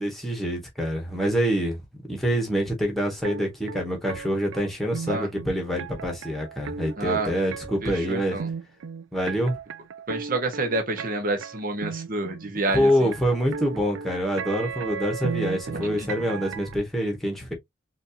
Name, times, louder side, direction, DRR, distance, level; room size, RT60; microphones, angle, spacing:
voice 1, 0.0-1.8 2.1-8.4 9.1-9.5 12.7-17.5, equal, ahead, 1.4 m, -26 dB
sound 1, 3.2-16.7, right 5 dB, 85° right, 0.4 m, -36 dB
voice 2, 7.0-7.3 7.8-8.5 10.1-13.1 15.7-16.1, right 2 dB, 45° right, 1.1 m, -28 dB
4.3 x 2.7 x 2.7 m
head